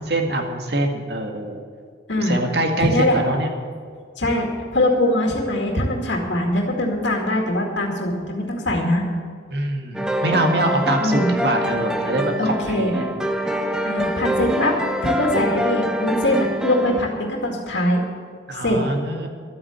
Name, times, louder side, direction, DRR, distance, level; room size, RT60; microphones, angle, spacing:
voice 1, 0.0-1.6 2.2-3.5 9.5-13.1 18.5-19.3, right 1 dB, 55° right, 3 dB, 2.0 m, -24 dB
voice 2, 2.8-3.2 4.2-9.0 11.0-11.3 12.4-12.9 13.8-14.8 15.0-18.0 18.6-18.8, left 1 dB, 65° left, 0 dB, 2.2 m, -22 dB
sound 1, 9.9-17.0, equal, 5° right, 0.7 m, -25 dB
12.5 x 8.8 x 8.1 m, 2.1 s
head